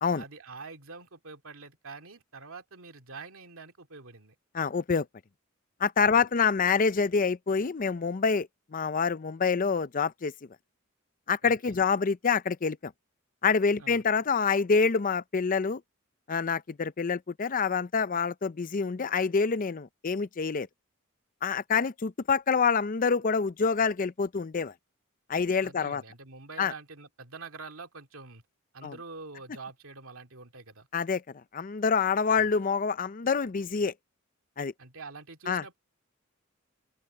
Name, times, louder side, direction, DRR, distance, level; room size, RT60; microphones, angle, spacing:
voice 1, 0.1-4.4 6.0-6.2 11.4-11.8 13.8-14.0 25.6-28.4 28.7-30.9 34.8-35.8, right 4 dB, 75° right, 2.4 m, -46 dB
voice 2, 4.5-5.1 5.8-10.3 11.3-12.9 13.4-15.8 16.3-20.7 21.4-24.7 25.3-26.0 26.6-26.7 28.8-29.0 30.9-31.2 31.5-33.9 34.6-34.7 35.5-35.6, left 5 dB, 40° left, 0.5 m, -26 dB
open air
head